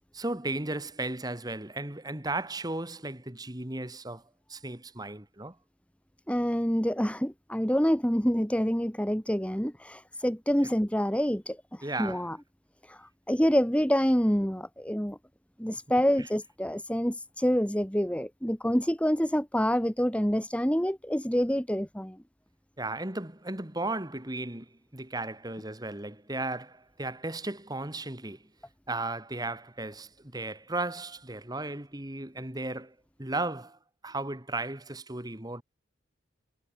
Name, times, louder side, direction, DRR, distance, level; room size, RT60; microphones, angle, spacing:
voice 1, 0.1-4.2 4.5-5.6 11.8-12.3 16.2-16.3 22.8-28.4 28.9-32.9 33.2-33.8 34.0-35.6, right 2 dB, 20° right, 1.9 m, -35 dB
voice 2, 6.3-11.6 12.0-12.4 12.9-13.0 13.3-15.2 15.6-22.2, equal, 5° left, 2.0 m, -27 dB
head